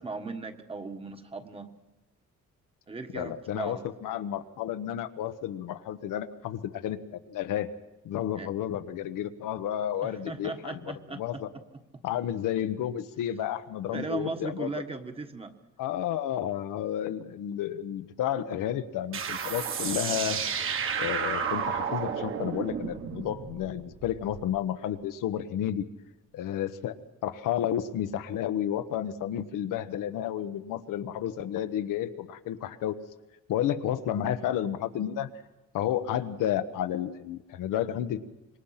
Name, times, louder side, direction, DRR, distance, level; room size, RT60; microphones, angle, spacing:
voice 1, 0.0-1.7 2.9-3.9 8.3-8.5 10.0-11.4 13.9-15.5, right 3 dB, 20° right, 6 dB, 1.4 m, -37 dB
voice 2, 3.1-7.7 8.0-10.8 11.1-11.5 12.0-14.7 15.8-20.4 21.0-25.9 26.3-26.9 27.2-33.0 33.5-35.3 35.7-38.2, left 10 dB, 80° left, 9 dB, 1.3 m, -31 dB
sound 1, 19.1-24.4, right 6 dB, 40° right, 1.6 m, -32 dB
26.5 x 22.5 x 5.8 m, 1.0 s
cardioid pair, 175°, 31 cm